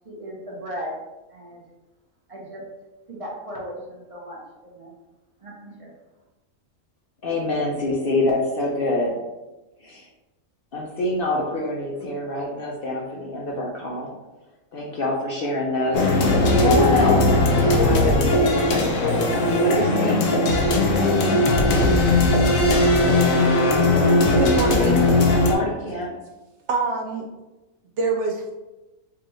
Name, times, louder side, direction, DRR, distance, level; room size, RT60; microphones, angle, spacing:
voice 1, 0.0-1.0 1.3-1.6 2.3-2.6 3.1-4.9 5.4-5.9, equal, 30° right, -4 dB, 0.8 m, -36 dB
voice 2, 7.2-9.2 9.8-10.1 10.7-14.1 14.7-19.0 19.6-21.9 25.3-26.1, left 1 dB, 55° left, -3 dB, 0.7 m, -27 dB
sound 1, 15.9-25.5, left 2 dB, 85° left, 1.0 m, -18 dB
voice 3, 24.4-25.1 26.7-27.3 28.0-28.5, right 3 dB, 70° right, 2 dB, 0.8 m, -24 dB
4.7 x 2.4 x 3.0 m, 1.0 s
omnidirectional pair, 1.4 m